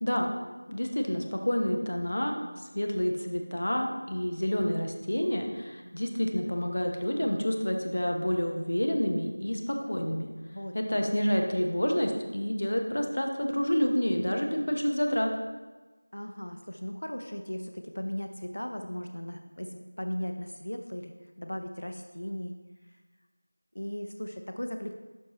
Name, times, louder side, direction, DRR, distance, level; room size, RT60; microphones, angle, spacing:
voice 1, 0.0-0.3 0.7-2.4 2.7-10.3 10.7-15.3, equal, 45° left, 3 dB, 0.8 m, -28 dB
voice 2, 10.5-11.0 16.1-22.5 22.9-23.0 23.7-24.9, equal, 80° left, 5 dB, 0.6 m, -37 dB
12.0 x 4.3 x 3.0 m, 1.3 s
figure-of-eight pair, 180°, 0 cm